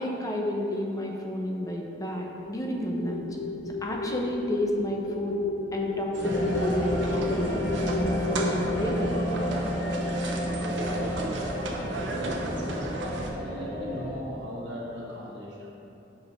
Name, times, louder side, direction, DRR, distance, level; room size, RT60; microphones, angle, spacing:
voice 1, 0.0-3.3 3.8-5.4 5.7-7.6 8.0-9.1, left 1 dB, 20° left, 0 dB, 0.7 m, -31 dB
sound 1, 2.4-8.6, left 3 dB, 85° left, 0.4 m, -33 dB
sound 2, 6.1-13.3, right 1 dB, 90° right, 0.8 m, -34 dB
sound 3, 6.2-14.1, equal, 60° left, 1.4 m, -31 dB
voice 2, 10.5-15.7, equal, 70° right, -5 dB, 1.3 m, -38 dB
6.2 x 5.2 x 4.3 m, 2.9 s
head